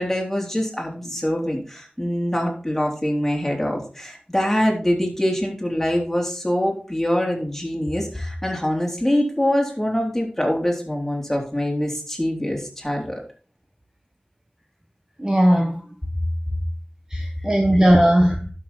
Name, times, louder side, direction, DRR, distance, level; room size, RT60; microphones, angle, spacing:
voice 1, 0.0-13.2 16.5-16.6 17.4-17.5 17.7-17.8, equal, 10° left, -1 dB, 3.5 m, -24 dB
voice 2, 15.2-15.8 17.1-18.5, equal, 20° right, 3 dB, 1.3 m, -17 dB
11.5 x 6.5 x 4.3 m, 0.39 s
wide cardioid pair, 60°, 3 cm